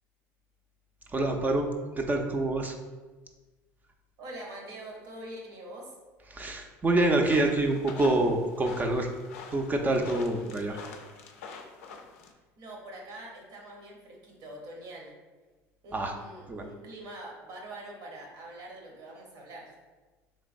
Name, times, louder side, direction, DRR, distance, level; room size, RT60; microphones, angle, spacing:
voice 1, 1.1-1.7 2.0-2.8 6.3-9.1 9.5-10.8 15.9-16.1 16.5-16.7, right 2 dB, 25° right, 3 dB, 0.4 m, -26 dB
voice 2, 4.2-5.9 10.7-10.8 12.6-15.1 15.8-19.7, right 1 dB, 70° right, -1 dB, 0.9 m, -44 dB
sound 1, 7.2-12.3, left 5 dB, 90° left, 0.4 m, -46 dB
3.4 x 3.0 x 2.5 m, 1.3 s
supercardioid pair, 85°, 7 cm